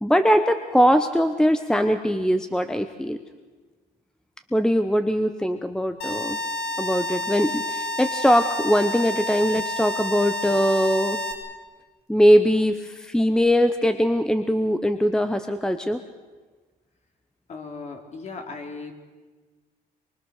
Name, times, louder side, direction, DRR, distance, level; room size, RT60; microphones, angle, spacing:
voice 1, 0.0-3.2 4.5-6.4 6.8-11.2 12.1-16.0, equal, 5° left, 9 dB, 0.9 m, -21 dB
sound 1, 6.0-11.3, left 2 dB, 80° left, 3.7 m, -29 dB
voice 2, 17.5-18.9, left 4 dB, 45° left, 3 dB, 3.6 m, -37 dB
24.0 x 23.5 x 6.6 m, 1.3 s
cardioid pair, 110°, 17 cm